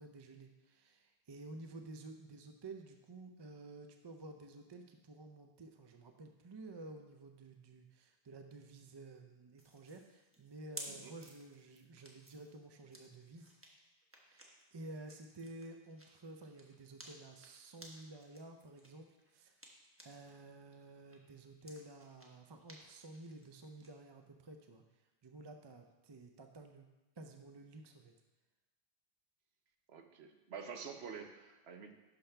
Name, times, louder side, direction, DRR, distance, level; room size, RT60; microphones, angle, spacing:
voice 1, 0.0-13.5 14.2-19.1 19.3-19.5 20.0-24.8 25.2-26.9 27.2-28.1, right 2 dB, 35° right, 4 dB, 0.4 m, -52 dB
sound 1, 9.6-20.4 20.7-23.9, equal, 15° right, 1.1 m, -56 dB
voice 2, 29.9-31.9, right 6 dB, 85° right, 6 dB, 1.0 m, -48 dB
11.5 x 5.7 x 3.3 m, 1.1 s
omnidirectional pair, 1.0 m